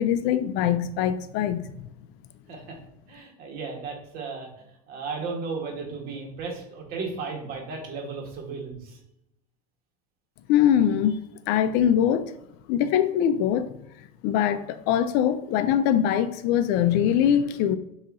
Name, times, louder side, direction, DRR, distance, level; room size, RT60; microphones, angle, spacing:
voice 1, 0.0-1.9 10.5-11.2 11.5-12.3 12.7-13.7 14.2-17.8, left 9 dB, 55° left, 12 dB, 0.4 m, -22 dB
voice 2, 3.1-4.5 4.9-9.0, right 4 dB, 50° right, 1 dB, 1.4 m, -35 dB
5.8 x 2.8 x 2.6 m, 0.84 s
supercardioid pair, 125°, 20 cm